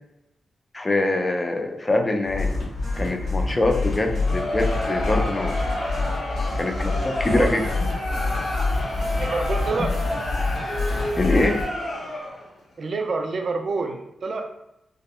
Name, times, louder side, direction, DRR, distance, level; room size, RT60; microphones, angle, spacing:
voice 1, 0.7-2.7 3.0-5.6 6.6-7.6 9.8-9.9 11.2-11.6, left 2 dB, 25° left, 4 dB, 0.3 m, -24 dB
sound 1, 2.2-11.6, left 3 dB, 85° left, 1.2 m, -27 dB
Crowd, 4.0-12.5, left 1 dB, 60° left, 0.9 m, -30 dB
voice 2, 9.1-9.9 12.8-14.5, right 3 dB, 55° right, 5 dB, 0.3 m, -27 dB
3.4 x 2.0 x 2.3 m, 0.83 s
wide cardioid pair, 110°, 0 cm